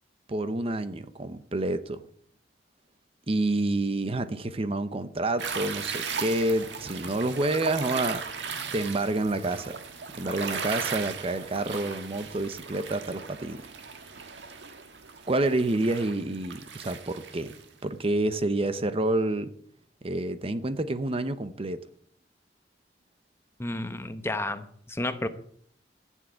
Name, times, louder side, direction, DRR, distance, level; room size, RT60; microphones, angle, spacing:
voice 1, 0.3-2.0 3.3-8.2 8.7-9.8 10.1-13.7 15.3-17.5 17.8-19.5 20.0-21.9, right 2 dB, 35° right, 0.8 m, -28 dB
sound 1, 5.4-17.6, right 5 dB, 90° right, 1.6 m, -37 dB
voice 2, 23.6-25.3, left 1 dB, 15° left, 0.9 m, -31 dB
14.0 x 7.5 x 8.0 m
head